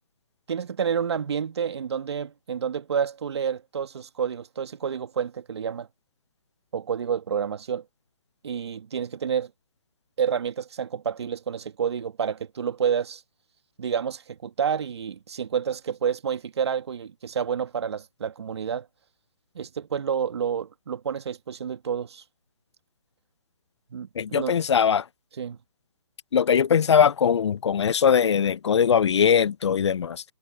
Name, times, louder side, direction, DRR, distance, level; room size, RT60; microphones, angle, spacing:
voice 1, 0.5-5.9 6.7-7.8 8.4-9.5 10.2-13.2 13.8-18.9 19.5-22.2 23.9-24.1 24.3-24.6 25.4-25.6, right 7 dB, 60° right, 2.2 m, -29 dB
voice 2, 24.2-25.0 26.3-30.2, left 7 dB, 60° left, 0.5 m, -21 dB
hypercardioid pair, 160°, 16 cm